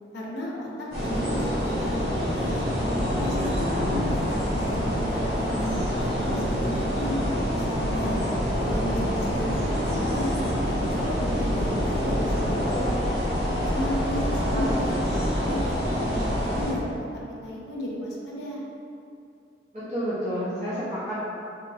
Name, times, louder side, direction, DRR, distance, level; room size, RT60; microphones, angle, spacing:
voice 1, 0.1-2.5 3.2-3.7 4.0-7.1 7.5-8.2 8.6-13.1 13.7-17.1 17.4-18.6, equal, 65° left, -4 dB, 0.5 m, -34 dB
sound 1, 0.9-16.7, equal, 60° right, 1.2 m, -26 dB
voice 2, 3.3-3.9 14.8-15.0 19.7-21.2, equal, 40° right, -14 dB, 0.9 m, -31 dB
sound 2, 7.8-12.9, right 1 dB, 85° right, 0.5 m, -36 dB
2.9 x 2.7 x 2.6 m, 2.5 s
head